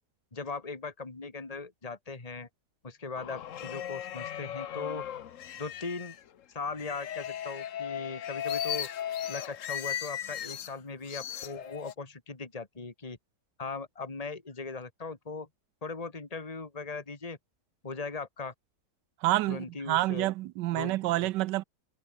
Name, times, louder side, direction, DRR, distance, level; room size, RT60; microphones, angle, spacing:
voice 1, 0.3-2.5 2.8-5.0 5.6-6.2 6.5-8.9 9.3-13.2 13.6-15.5 15.8-17.4 17.8-18.5 19.5-20.3 20.7-21.3, left 4 dB, 20° left, 2.3 m, -39 dB
sound 1, 3.2-6.2 6.8-10.7 11.1-11.9, left 10 dB, 55° left, 1.1 m, -37 dB
voice 2, 19.2-21.6, right 17 dB, 90° right, 1.2 m, -28 dB
omnidirectional pair, 1.8 m